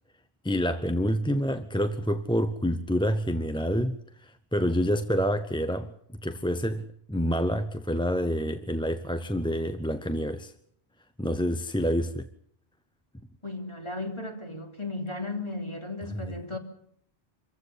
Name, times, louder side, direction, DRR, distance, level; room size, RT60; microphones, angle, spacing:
voice 1, 0.4-4.0 4.2-5.9 6.2-10.5 11.2-12.3 16.0-16.4, equal, 5° left, 0.7 m, -27 dB
voice 2, 13.4-16.6, left 2 dB, 25° left, 3.4 m, -35 dB
26.0 x 15.5 x 8.1 m
omnidirectional pair, 1.1 m